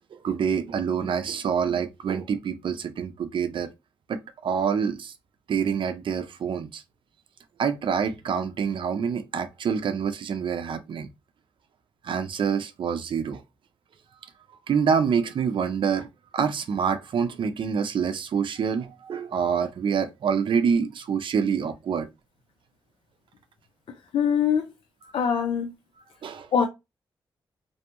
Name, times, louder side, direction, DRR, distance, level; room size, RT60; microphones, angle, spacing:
voice 1, 0.2-3.7 4.1-5.1 5.5-6.8 7.6-11.1 12.0-13.4 14.7-16.1 16.3-22.1 26.2-26.5, right 6 dB, 60° right, 0.5 m, -26 dB
voice 2, 23.9-24.7 25.1-25.7 26.5-26.7, left 7 dB, 70° left, 0.5 m, -23 dB
2.6 x 2.1 x 2.9 m
cardioid pair, 65°, 9 cm